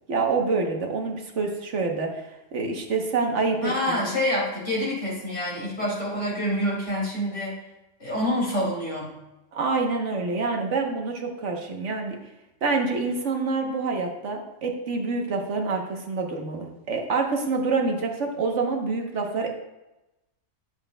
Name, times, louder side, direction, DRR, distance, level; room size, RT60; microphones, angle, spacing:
voice 1, 0.1-4.0 9.5-12.2 12.6-19.5, right 4 dB, 75° right, 2 dB, 1.3 m, -27 dB
voice 2, 3.6-7.6 8.0-9.1, left 1 dB, 60° left, -6 dB, 3.6 m, -27 dB
11.5 x 7.5 x 2.2 m, 0.96 s
omnidirectional pair, 1.3 m